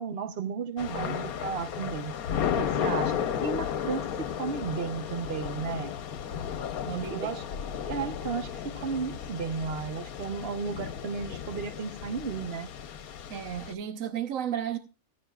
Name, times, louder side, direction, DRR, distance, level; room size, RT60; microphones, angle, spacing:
voice 1, 0.0-2.1 2.6-5.9 7.1-7.4 7.9-12.7, right 5 dB, 45° right, 1.1 m, -34 dB
Thunder / Rain, 0.8-13.7, left 8 dB, 80° left, 1.3 m, -34 dB
voice 2, 6.9-7.3 13.3-14.8, right 10 dB, 70° right, 1.2 m, -33 dB
15.5 x 15.0 x 2.4 m
omnidirectional pair, 1.5 m